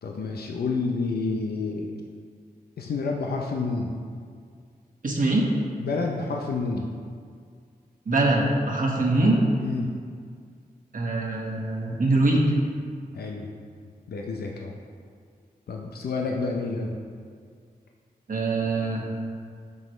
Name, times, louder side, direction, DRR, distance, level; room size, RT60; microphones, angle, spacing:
voice 1, 0.0-1.9 2.8-3.9 5.8-6.8 9.6-9.9 13.1-13.5 14.1-14.8 15.7-17.0, left 4 dB, 80° left, 0 dB, 0.6 m, -29 dB
voice 2, 5.0-5.5 8.1-9.4 10.9-12.4 18.3-19.0, right 2 dB, 60° right, -2 dB, 1.4 m, -23 dB
8.9 x 6.1 x 3.2 m, 2.1 s
cardioid pair, 65°, 16 cm